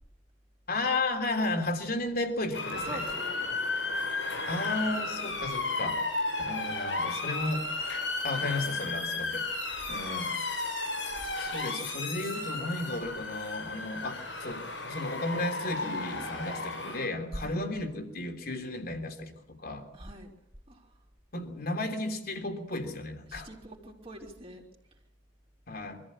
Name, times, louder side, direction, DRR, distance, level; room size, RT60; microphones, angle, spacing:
voice 1, 0.7-3.0 4.5-6.0 6.4-7.7 8.2-9.5 9.9-10.7 11.4-19.9 21.3-23.5 25.7-26.0, left 2 dB, 55° left, 5 dB, 3.3 m, -34 dB
Motor vehicle (road) / Siren, 2.5-17.0, left 3 dB, 85° left, 7.2 m, -34 dB
voice 2, 2.9-3.5 17.3-17.6 19.9-20.3 20.7-20.9 23.3-24.6, right 1 dB, 35° right, 0 dB, 3.7 m, -43 dB
24.5 x 14.5 x 8.6 m, 0.86 s
head